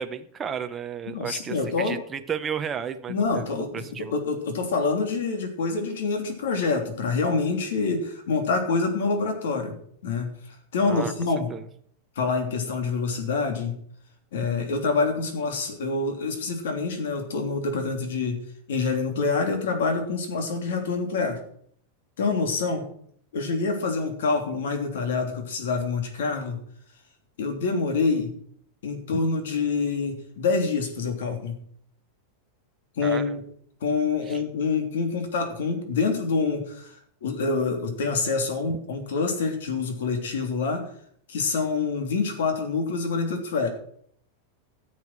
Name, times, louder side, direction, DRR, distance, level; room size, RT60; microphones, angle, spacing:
voice 1, 0.0-4.2 10.8-11.1 11.5-11.7 29.1-29.2 33.0-33.4 34.3-34.4, right 7 dB, 15° right, 8 dB, 0.6 m, -33 dB
voice 2, 1.1-2.0 3.1-9.8 10.0-10.4 10.7-11.5 12.1-13.8 14.3-18.4 18.7-21.4 22.2-22.9 23.3-26.6 27.4-28.3 28.8-31.6 33.0-33.4 33.8-40.8 41.3-43.7, left 4 dB, 80° left, 5 dB, 3.1 m, -26 dB
14.0 x 7.5 x 6.1 m, 0.63 s
supercardioid pair, 175°, 0 cm